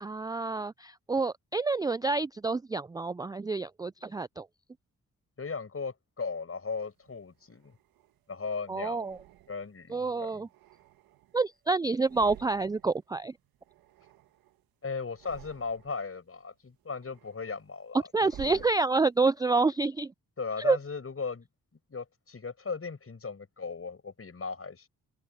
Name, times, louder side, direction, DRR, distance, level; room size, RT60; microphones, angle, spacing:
voice 1, 0.0-4.5 8.7-9.2 9.9-10.5 11.3-13.3 18.1-20.1 20.6-20.8, right 3 dB, 10° right, 0.3 m, -28 dB
voice 2, 5.4-7.8 8.3-9.1 9.5-10.4 14.8-18.6 20.4-21.5 21.9-24.9, left 4 dB, 40° left, 5.3 m, -37 dB
sound 1, 7.0-8.2 8.9-9.9 10.3-11.6 11.9-13.0 13.3-14.6 15.0-16.1 16.5-19.3, right 13 dB, 90° right, 1.4 m, -53 dB
open air
supercardioid pair, 50°, 35 cm